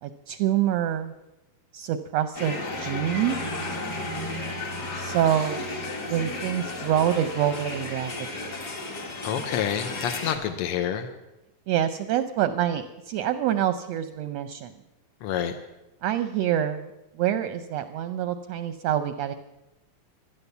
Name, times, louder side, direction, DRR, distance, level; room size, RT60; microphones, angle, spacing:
voice 1, 0.0-1.1 1.7-3.4 4.9-5.7 6.1-8.1 11.7-14.7 16.0-16.9 17.2-19.3, right 10 dB, 75° right, 11 dB, 1.6 m, -26 dB
sound 1, 2.3-10.4, left 2 dB, 35° left, 2.1 m, -33 dB
voice 2, 9.2-11.1 15.2-15.6, left 9 dB, 70° left, 7 dB, 1.4 m, -28 dB
16.5 x 12.0 x 7.0 m, 0.99 s
omnidirectional pair, 3.6 m